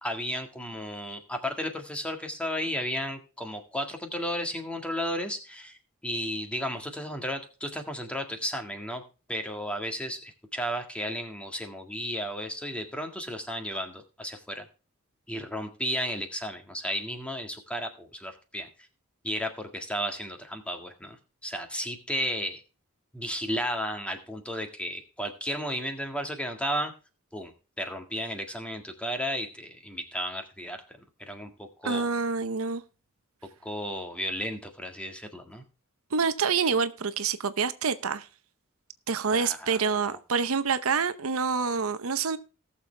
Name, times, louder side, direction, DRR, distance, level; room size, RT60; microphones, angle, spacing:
voice 1, 0.0-5.8 6.0-9.0 9.3-14.7 15.3-18.7 19.2-21.2 21.4-22.6 23.1-26.9 27.3-31.0 31.3-32.1 33.6-35.6 39.3-40.2, equal, 5° left, 1.7 m, -33 dB
voice 2, 31.8-32.8 36.1-38.3 39.1-42.4, right 5 dB, 75° right, 0.8 m, -27 dB
18.5 x 6.9 x 3.3 m
head